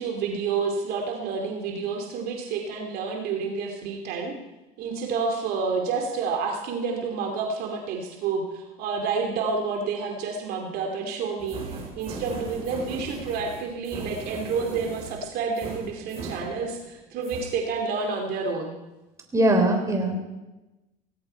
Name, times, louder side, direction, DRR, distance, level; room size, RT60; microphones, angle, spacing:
voice 1, 0.0-4.3 4.8-18.7, right 5 dB, 60° right, 2 dB, 2.7 m, -29 dB
sound 1, 11.4-17.0 17.2-17.5, right 3 dB, 35° right, 5.7 m, -39 dB
voice 2, 19.3-20.2, right 1 dB, 15° right, 3 dB, 3.7 m, -21 dB
17.5 x 16.5 x 4.5 m, 1.1 s
supercardioid pair, 95°, 18 cm